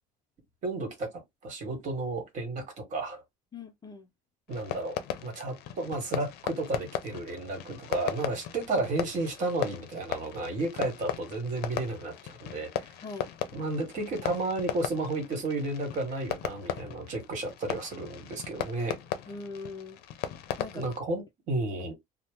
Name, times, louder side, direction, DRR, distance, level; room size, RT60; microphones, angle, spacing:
voice 1, 0.6-1.1 1.4-3.2 4.5-12.9 13.5-19.0 20.7-21.9, right 2 dB, 50° right, 1.4 m, -32 dB
voice 2, 3.5-4.1 13.0-13.3 19.3-20.0 20.6-20.8 21.8-21.9, left 4 dB, 25° left, 0.4 m, -41 dB
Fireworks, 4.5-21.0, left 10 dB, 80° left, 0.5 m, -37 dB
2.7 x 2.0 x 3.4 m
cardioid pair, 145°, 16 cm